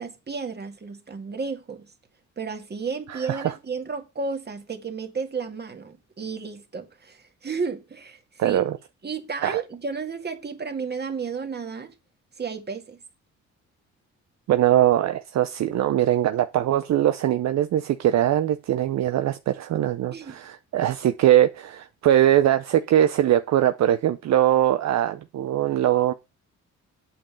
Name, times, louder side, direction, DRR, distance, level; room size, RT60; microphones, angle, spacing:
voice 1, 0.0-1.9 2.4-8.6 9.0-11.9 12.4-13.0 20.1-20.4, right 5 dB, 35° right, 2.1 m, -32 dB
voice 2, 3.1-3.6 8.4-8.8 9.4-9.6 14.5-26.1, right 12 dB, 65° right, 0.7 m, -21 dB
8.7 x 5.4 x 6.8 m
cardioid pair, 90°, 30 cm